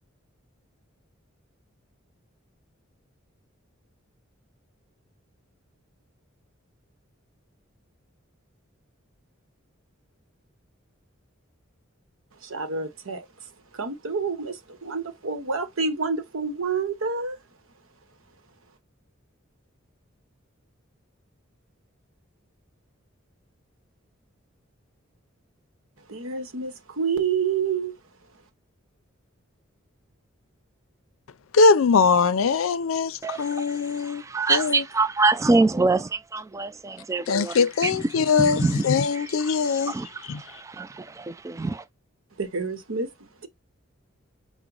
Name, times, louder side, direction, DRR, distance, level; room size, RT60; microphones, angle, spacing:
voice 1, 12.4-17.4 26.1-28.0 42.4-43.5, right 5 dB, 90° right, 0.9 m, -29 dB
voice 2, 31.5-34.2 34.5-34.8 37.3-39.9 40.3-40.4, left 5 dB, 80° left, 0.5 m, -21 dB
voice 3, 33.2-41.8, right 3 dB, 15° right, 0.3 m, -26 dB
5.8 x 2.1 x 3.8 m
head